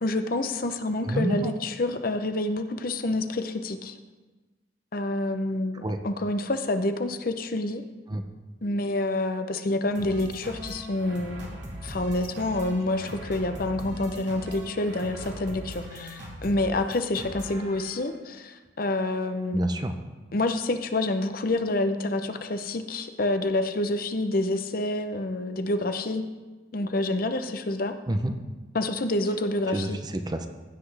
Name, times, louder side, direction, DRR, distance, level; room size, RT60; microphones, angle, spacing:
voice 1, 0.0-4.0 4.9-7.8 8.6-11.5 11.8-19.6 20.3-26.2 26.7-27.9 28.7-30.0, left 2 dB, 50° left, 8 dB, 0.6 m, -28 dB
voice 2, 1.0-1.5 5.8-6.0 8.1-8.2 19.5-20.0 28.1-28.4 29.7-30.5, right 1 dB, 20° right, 7 dB, 0.6 m, -28 dB
sound 1, 10.0-18.2, equal, 70° right, 2.3 m, -40 dB
15.5 x 7.7 x 3.3 m, 1.2 s
head